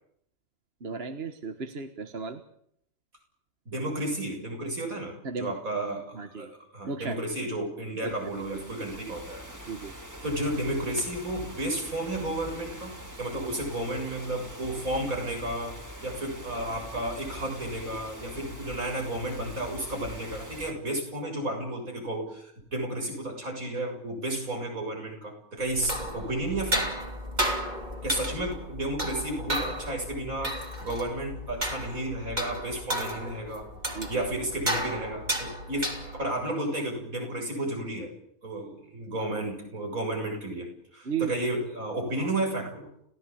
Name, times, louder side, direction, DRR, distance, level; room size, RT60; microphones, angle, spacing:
voice 1, 0.8-2.4 5.2-5.5 6.1-6.5 6.8-7.3 8.0-8.3 8.5-8.6 9.7-9.9 33.9-34.2 39.2-39.3 41.0-41.5 42.2-42.3, right 5 dB, 45° right, 7 dB, 1.7 m, -35 dB
voice 2, 3.7-6.5 6.7-9.7 10.2-27.0 28.0-33.7 34.1-35.9 36.2-38.1 38.4-42.9, right 1 dB, 70° right, 2 dB, 7.7 m, -32 dB
sound 1, 8.0-20.7, equal, 10° right, 2.7 m, -43 dB
sound 2, 25.7-36.4, equal, 30° right, 3.3 m, -33 dB
29.5 x 16.5 x 8.7 m, 0.73 s
omnidirectional pair, 1.5 m